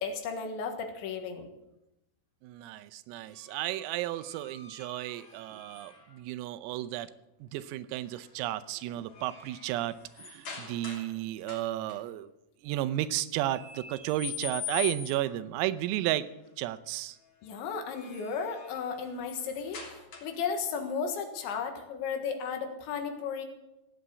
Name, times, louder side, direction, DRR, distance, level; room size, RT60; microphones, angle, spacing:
voice 1, 0.0-1.5 17.4-23.5, left 6 dB, 70° left, 5 dB, 3.7 m, -34 dB
voice 2, 2.4-7.1 7.4-12.3 12.6-16.3 16.6-17.2, right 14 dB, 90° right, 13 dB, 3.5 m, -33 dB
sound 1, 3.3-6.2 8.0-8.3 8.7-11.2 11.4-12.0 13.5-15.4 17.7-20.6, left 8 dB, 40° left, 3.9 m, -44 dB
16.5 x 10.0 x 8.3 m, 0.91 s
omnidirectional pair, 5.9 m